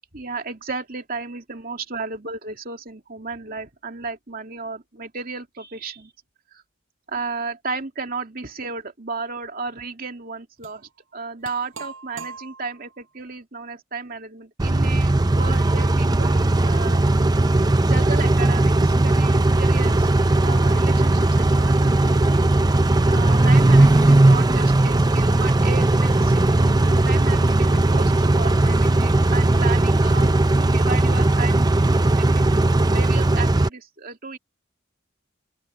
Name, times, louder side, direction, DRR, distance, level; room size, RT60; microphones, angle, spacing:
voice 1, 0.1-6.1 6.5-6.6 7.1-20.1 20.4-22.4 22.9-26.5 27.1-31.7 32.1-34.4, right 4 dB, 45° right, 2.7 m, -34 dB
sound 1, 10.6-10.8 11.4-12.9, right 4 dB, 75° right, 6.4 m, -40 dB
Car / Idling / Accelerating revving vroom, 14.6-33.7, right 2 dB, 20° right, 0.6 m, -18 dB
Alarm, 20.2-29.4, left 5 dB, 35° left, 7.9 m, -49 dB
open air
head